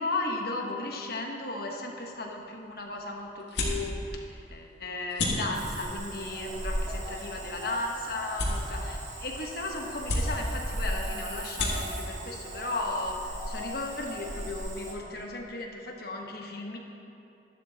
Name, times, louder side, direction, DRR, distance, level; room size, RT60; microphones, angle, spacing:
voice 1, 0.0-16.8, left 2 dB, 55° left, 0 dB, 1.2 m, -35 dB
sound 1, 2.1-13.6, left 1 dB, 75° left, 2.1 m, -36 dB
Cricket / Frog, 5.5-14.9, equal, 40° right, 1.6 m, -38 dB
13.0 x 11.5 x 2.9 m, 2.7 s
head